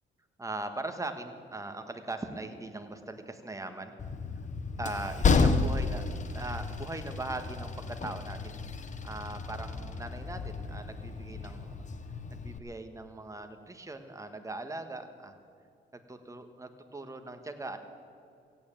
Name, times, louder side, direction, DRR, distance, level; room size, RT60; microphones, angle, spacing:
voice 1, 0.4-3.9 4.8-11.7 12.3-15.4 15.9-17.8, right 2 dB, 15° right, 7 dB, 1.5 m, -40 dB
Train, 4.0-12.6, left 4 dB, 40° left, 1.1 m, -32 dB
15.5 x 9.2 x 8.7 m, 2.4 s
cardioid pair, 90°, 20 cm